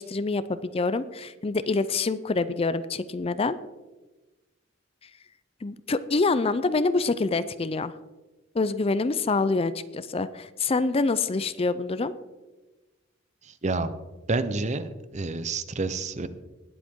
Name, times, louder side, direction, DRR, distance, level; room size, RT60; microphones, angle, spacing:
voice 1, 0.0-3.6 5.6-7.9 8.5-12.1, left 3 dB, 30° left, 14 dB, 0.5 m, -26 dB
voice 2, 13.4-13.9 14.3-16.3, right 3 dB, 35° right, 12 dB, 0.7 m, -29 dB
20.0 x 7.8 x 3.7 m, 1.2 s
head